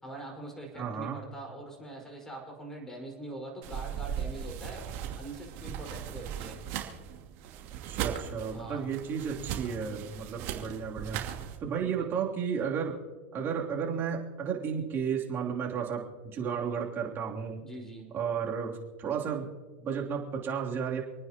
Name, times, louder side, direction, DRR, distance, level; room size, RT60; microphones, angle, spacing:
voice 1, 0.0-6.6 8.5-8.8 11.8-12.1 17.6-18.2, right 1 dB, 10° left, 0 dB, 5.1 m, -43 dB
voice 2, 0.7-1.2 7.9-11.2 11.6-12.9 13.3-17.6 18.1-19.5 19.8-21.0, right 7 dB, 35° right, -1 dB, 3.1 m, -33 dB
sound 1, 3.6-11.6, right 9 dB, 55° right, 2.7 m, -38 dB
28.5 x 9.6 x 3.0 m, 1.4 s
hypercardioid pair, 110°, 6 cm